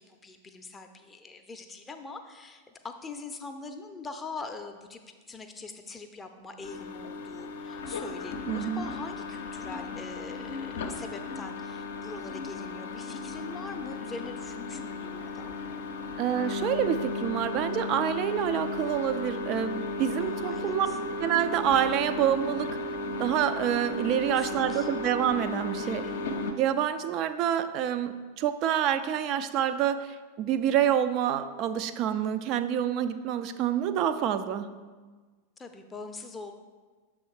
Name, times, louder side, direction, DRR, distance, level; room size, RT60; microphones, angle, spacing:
voice 1, 0.0-5.0 5.3-15.6 20.2-21.0 24.2-24.9 25.8-26.2 35.6-36.5, left 3 dB, 15° left, 6 dB, 0.5 m, -43 dB
sound 1, 6.6-26.5, left 2 dB, 60° left, 0.6 m, -35 dB
voice 2, 8.5-8.8 16.2-20.9 21.2-22.8 23.2-26.0 26.6-34.7, right 10 dB, 40° right, 10 dB, 0.3 m, -27 dB
6.8 x 3.6 x 4.7 m, 1.4 s
figure-of-eight pair, 90°, 0 cm